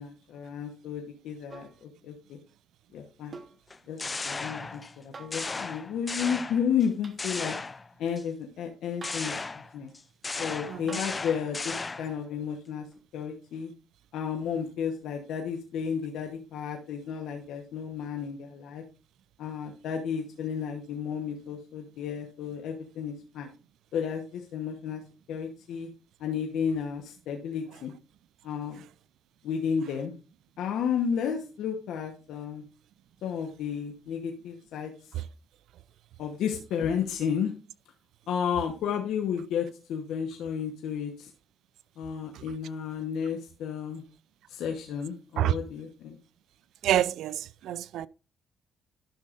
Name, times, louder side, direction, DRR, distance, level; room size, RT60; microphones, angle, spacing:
voice 1, 0.0-2.4 2.9-3.4 3.9-7.6 8.0-9.9 10.4-13.7 14.1-18.8 19.4-23.5 23.9-25.0 25.3-25.9 26.2-27.9 28.4-28.8 29.4-30.2 30.6-32.6 33.2-35.1 36.2-37.5 38.3-41.3 42.0-44.0 44.5-46.2, left 7 dB, 80° left, 1.0 m, -32 dB
sound 1, 1.5-1.8 3.3-3.6 5.1-5.5 7.0-7.2 9.0-9.4 10.9-11.2 12.9-13.0, right 4 dB, 35° right, 1.2 m, -46 dB
sound 2, 3.7-5.0 5.3-6.9 7.2-8.2 9.0-12.2, left 3 dB, 25° left, 0.3 m, -36 dB
voice 2, 46.8-48.1, right 12 dB, 80° right, 0.3 m, -27 dB
11.5 x 6.5 x 2.5 m
cardioid pair, 90°, 0 cm